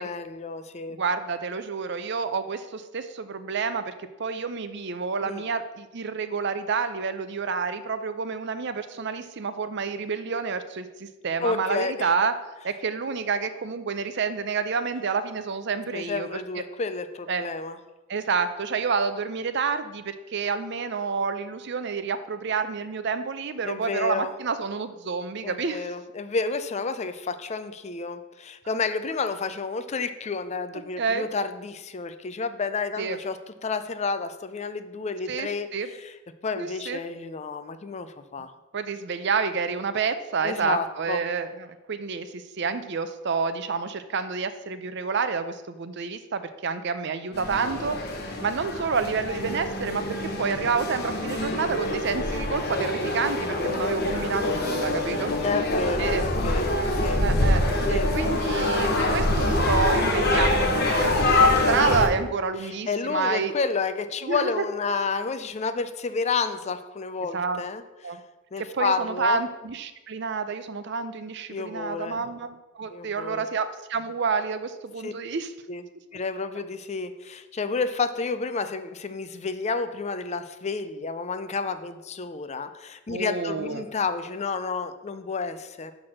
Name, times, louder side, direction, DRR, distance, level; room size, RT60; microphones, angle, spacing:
voice 1, 0.0-1.0 5.2-5.4 11.4-12.1 15.9-17.8 23.6-24.3 25.4-36.1 36.4-38.5 40.4-41.2 55.4-57.2 57.9-58.1 62.6-68.2 68.5-69.4 71.5-72.2 72.9-73.5 75.0-75.1 75.7-75.8 76.1-85.9, left 4 dB, 35° left, 10 dB, 0.5 m, -30 dB
voice 2, 1.0-3.9 4.2-12.3 12.6-16.3 16.6-16.7 17.3-17.4 18.1-25.9 31.0-31.3 33.0-33.2 35.3-35.9 36.6-37.0 38.7-48.0 48.4-50.0 50.4-55.3 56.0-56.3 57.2-57.6 57.9-63.5 64.2-64.6 67.3-67.6 68.0-68.2 68.6-75.5 83.1-83.9, right 5 dB, 60° right, 11 dB, 0.6 m, -29 dB
sound 1, 47.3-62.1, left 2 dB, 50° left, 1.2 m, -25 dB
6.0 x 6.0 x 6.3 m, 1.1 s
head